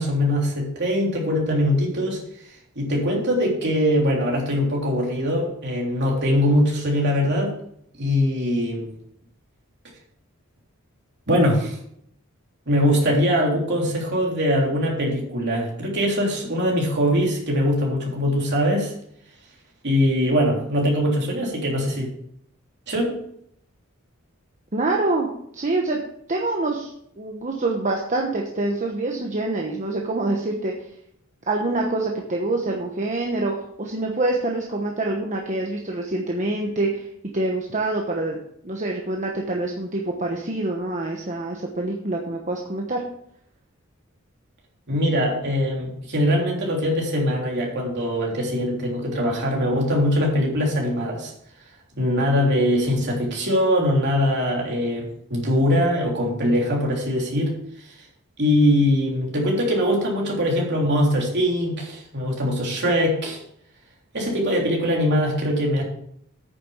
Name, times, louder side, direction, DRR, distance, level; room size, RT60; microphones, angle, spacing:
voice 1, 0.0-2.2 2.7-7.6 8.0-8.9 11.3-11.8 12.7-18.9 19.8-22.1 22.9-23.2 44.9-51.3 52.0-57.5 58.4-63.4 64.1-65.8, equal, 55° right, -2 dB, 3.4 m, -22 dB
voice 2, 24.7-26.0 26.3-26.9 27.2-30.7 31.5-37.1 37.3-38.4 38.6-43.0, right 2 dB, 35° right, 0 dB, 1.1 m, -26 dB
9.5 x 6.9 x 5.7 m, 0.69 s
head